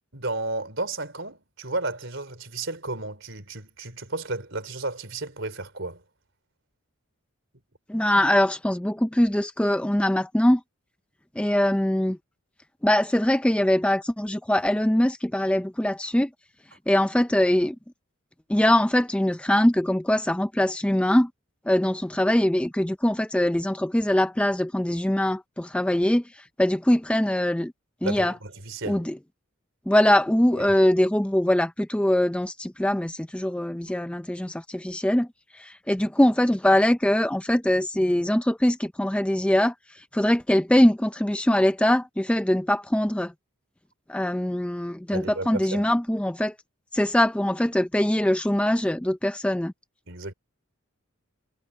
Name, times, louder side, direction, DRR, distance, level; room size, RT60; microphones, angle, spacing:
voice 1, 0.1-6.0 28.0-29.1 30.5-30.6 45.1-45.8 50.1-50.3, right 2 dB, 60° right, 4.0 m, -33 dB
voice 2, 7.9-10.6 11.4-12.2 12.8-16.3 16.9-17.8 18.5-21.3 21.7-27.7 28.0-28.4 28.8-29.2 29.9-35.3 35.5-43.3 44.1-46.5 46.9-49.7, left 1 dB, 5° left, 0.4 m, -22 dB
head